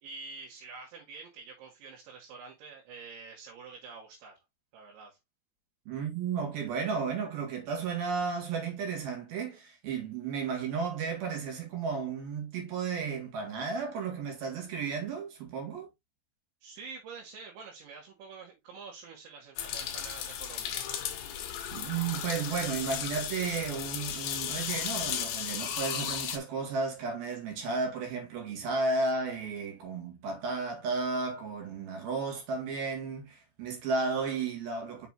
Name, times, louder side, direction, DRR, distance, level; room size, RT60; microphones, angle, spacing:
voice 1, 0.0-4.3 4.7-5.2 16.6-20.9, right 4 dB, 85° right, 4.3 m, -47 dB
voice 2, 5.9-15.9 21.7-35.1, right 4 dB, 60° right, 3.7 m, -33 dB
sound 1, 19.6-26.4, left 9 dB, 75° left, 1.9 m, -35 dB
6.9 x 6.0 x 2.7 m
omnidirectional pair, 5.1 m